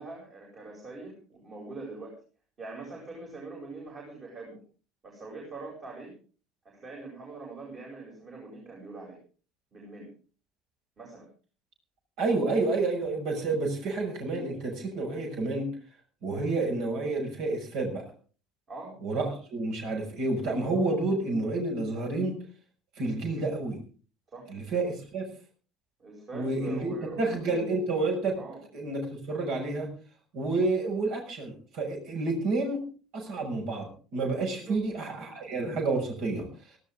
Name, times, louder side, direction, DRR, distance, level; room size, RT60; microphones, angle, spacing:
voice 1, 0.0-2.2 2.6-4.6 5.0-6.1 6.6-9.2 9.7-10.1 11.0-11.3 18.7-19.0 24.3-24.5 26.0-27.6 28.3-28.6 34.4-34.8, right 3 dB, 35° right, -2 dB, 7.8 m, -43 dB
voice 2, 12.2-15.7 16.2-18.0 19.0-22.3 23.0-23.8 24.5-25.2 26.3-28.3 28.7-29.9 30.3-32.8 33.1-36.5, right 3 dB, 55° right, 2 dB, 6.5 m, -29 dB
19.0 x 16.5 x 3.8 m, 0.39 s
figure-of-eight pair, 65°, 0 cm